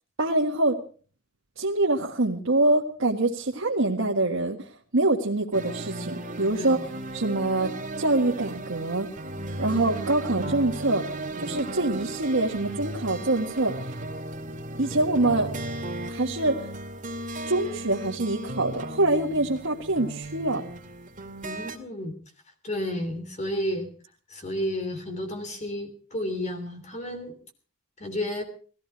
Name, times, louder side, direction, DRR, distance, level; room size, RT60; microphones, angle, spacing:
voice 1, 0.2-0.8 1.6-4.7 4.9-6.8 7.1-9.1 9.6-11.0 11.4-13.9 14.8-15.5 16.1-16.7 17.5-20.6, right 2 dB, 90° right, -1 dB, 1.7 m, -25 dB
sound 1, 5.5-21.8, right 2 dB, 40° right, 2.3 m, -36 dB
voice 2, 21.4-22.1 22.6-23.9 24.3-27.4 28.0-28.4, left 1 dB, 35° left, 5 dB, 3.2 m, -31 dB
20.0 x 15.0 x 4.6 m, 0.42 s
head